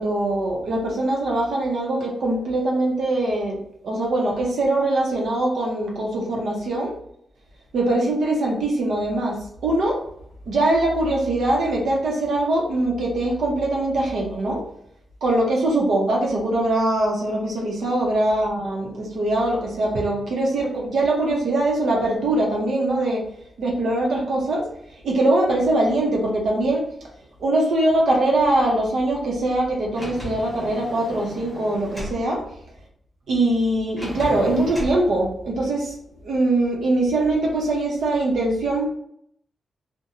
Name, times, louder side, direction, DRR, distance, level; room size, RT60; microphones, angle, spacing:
voice 1, 0.0-3.6 3.8-6.9 7.7-10.0 10.5-14.6 15.2-23.2 23.6-24.7 25.0-26.9 27.4-32.4 33.3-35.9 36.2-38.9, right 2 dB, 80° right, -1 dB, 0.7 m, -22 dB
Sliding door, 29.9-32.2 34.0-35.0, equal, ahead, 1.0 m, -35 dB
2.5 x 2.1 x 2.8 m, 0.71 s
wide cardioid pair, 150°, 0 cm